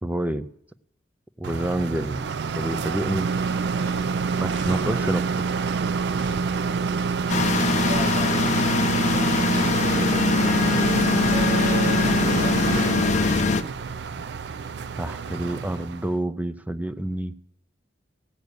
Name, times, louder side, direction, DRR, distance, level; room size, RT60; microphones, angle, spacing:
voice 1, 0.0-0.5 1.4-2.2 2.5-3.3 4.4-5.5 15.0-17.3, right 1 dB, 10° right, 11 dB, 0.4 m, -28 dB
sound 1, 1.4-16.1, right 5 dB, 70° right, 0.4 m, -27 dB
voice 2, 3.7-4.1 7.5-8.8 11.2-12.6, right 2 dB, 45° right, 0 dB, 2.4 m, -34 dB
sound 2, 4.5-5.0 6.2-6.5 7.8-8.1 9.5-9.9 11.2-11.6 13.2-13.6, right 2 dB, 85° right, 0.9 m, -38 dB
sound 3, 7.3-13.6, left 4 dB, 40° left, 0.5 m, -22 dB
16.5 x 6.6 x 6.6 m, 0.78 s
head